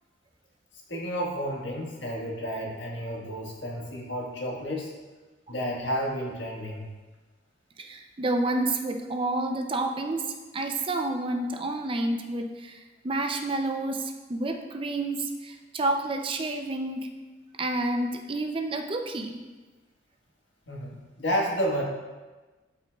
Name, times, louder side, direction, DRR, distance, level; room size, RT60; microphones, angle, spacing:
voice 1, 0.9-4.9 5.5-6.9 20.7-21.8, equal, 75° left, -2 dB, 1.5 m, -31 dB
voice 2, 7.8-17.1 17.6-19.4, right 2 dB, 30° right, 5 dB, 0.5 m, -29 dB
11.5 x 5.7 x 2.4 m, 1.3 s
head